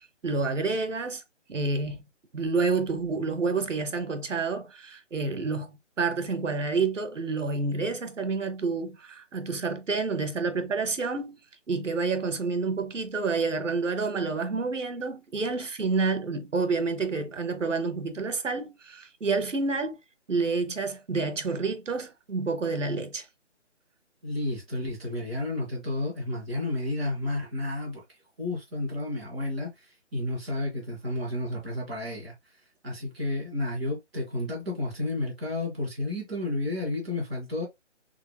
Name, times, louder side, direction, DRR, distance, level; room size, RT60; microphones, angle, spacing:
voice 1, 0.2-1.2 1.5-2.0 2.3-11.4 11.7-20.0 20.3-23.2, right 4 dB, 90° right, 1.2 m, -29 dB
voice 2, 24.2-28.0 28.4-32.3 32.8-37.6, left 2 dB, ahead, 0.9 m, -31 dB
4.3 x 3.5 x 2.2 m
hypercardioid pair, 170°, 36 cm